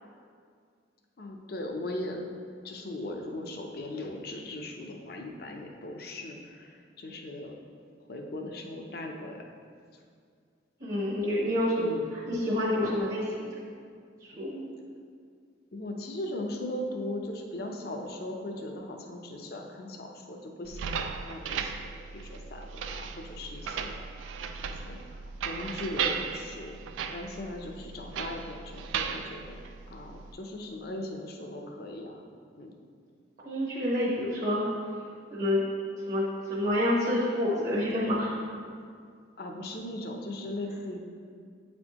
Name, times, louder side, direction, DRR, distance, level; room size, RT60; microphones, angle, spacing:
voice 1, 1.2-2.3 2.6-7.5 8.1-9.4 11.7-12.1 15.7-24.0 24.6-26.8 27.1-29.6 29.9-32.2 32.5-32.7 39.4-41.0, left 1 dB, 55° left, 2 dB, 0.6 m, -38 dB
voice 2, 10.8-13.5 14.2-14.6 33.4-34.7 35.3-35.6 36.1-38.3, left 1 dB, 40° right, -7 dB, 0.9 m, -28 dB
sound 1, 20.6-30.3, right 6 dB, 85° right, 0.3 m, -36 dB
8.2 x 4.2 x 2.9 m, 2.2 s
head